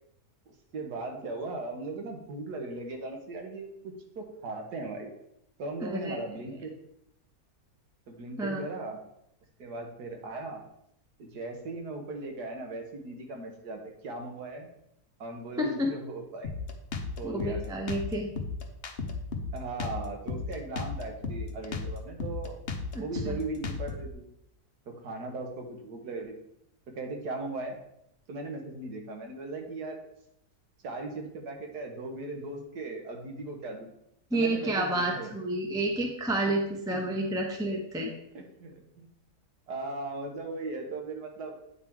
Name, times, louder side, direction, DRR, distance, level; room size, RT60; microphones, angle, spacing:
voice 1, 0.5-5.1 5.6-6.7 8.1-9.0 9.6-10.6 11.2-14.7 15.2-16.5 17.2-17.6 19.5-22.6 23.0-24.2 24.9-26.3 27.0-27.8 28.3-30.0 30.8-33.9 34.3-35.3 36.9-37.1 38.3-39.1 39.7-41.6, right 2 dB, 90° right, 2 dB, 1.8 m, -38 dB
voice 2, 5.8-6.2 8.4-8.7 15.6-15.9 17.2-18.3 22.9-23.4 34.3-38.1, right 1 dB, 5° right, 1 dB, 0.5 m, -30 dB
Drum kit, 16.4-24.1, left 4 dB, 50° left, 0.8 m, -35 dB
8.9 x 3.8 x 4.5 m, 0.77 s
omnidirectional pair, 1.7 m